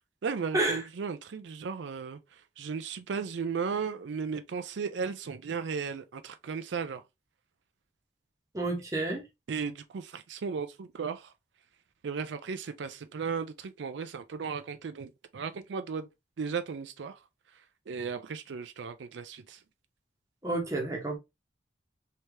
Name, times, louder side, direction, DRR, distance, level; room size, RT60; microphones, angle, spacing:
voice 1, 0.2-7.0 9.5-11.3 12.0-16.1 16.4-17.2 17.5-19.6, right 5 dB, 75° right, 0.4 m, -36 dB
voice 2, 8.5-9.2 20.4-21.2, right 2 dB, 15° right, 0.9 m, -29 dB
3.2 x 2.8 x 3.2 m
head